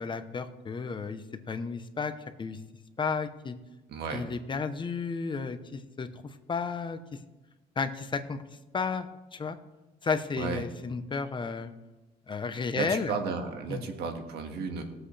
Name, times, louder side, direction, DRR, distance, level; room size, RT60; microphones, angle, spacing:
voice 1, 0.0-2.1 2.4-2.6 3.0-3.5 4.1-7.0 7.8-8.4 8.7-9.6 10.0-11.7 12.3-13.2 13.7-13.8, left 5 dB, 30° left, 9 dB, 0.9 m, -33 dB
voice 2, 3.9-4.3 10.4-10.7 12.8-14.8, right 5 dB, 75° right, 4 dB, 1.8 m, -33 dB
20.5 x 7.9 x 3.4 m, 1.1 s
cardioid pair, 110°, 17 cm